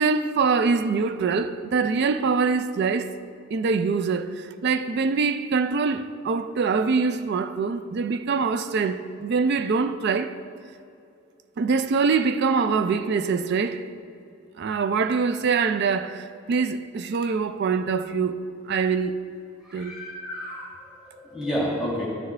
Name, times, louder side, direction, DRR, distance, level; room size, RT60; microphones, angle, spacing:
voice 1, 0.0-3.1 3.5-10.4 11.6-13.8 14.6-18.4 18.7-19.1 19.7-20.0, right 5 dB, 55° right, 0.3 m, -24 dB
voice 2, 19.6-22.1, equal, 5° right, 2.0 m, -31 dB
12.0 x 5.8 x 3.3 m
head